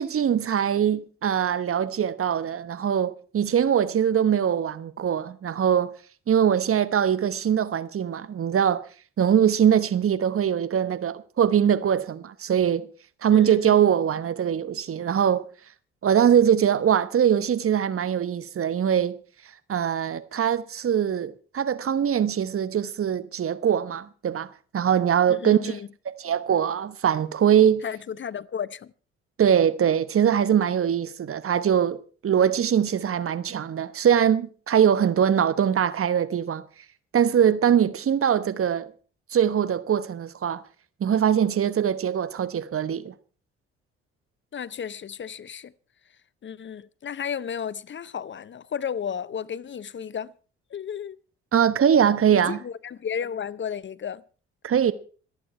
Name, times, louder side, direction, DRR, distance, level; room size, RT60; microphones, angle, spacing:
voice 1, 0.0-5.9 6.3-8.8 9.2-12.9 13.2-15.5 16.0-19.2 19.7-24.5 24.7-25.8 26.0-27.8 29.4-36.6 37.1-38.9 39.3-40.6 41.0-43.1 51.5-52.6 54.6-54.9, right 9 dB, 50° right, 1.1 m, -22 dB
voice 2, 13.3-13.8 25.3-25.9 27.8-28.9 44.5-45.7 46.4-50.3 50.7-51.2 52.3-54.2, left 7 dB, 40° left, 0.7 m, -33 dB
26.5 x 8.9 x 4.4 m
hypercardioid pair, 50°, 29 cm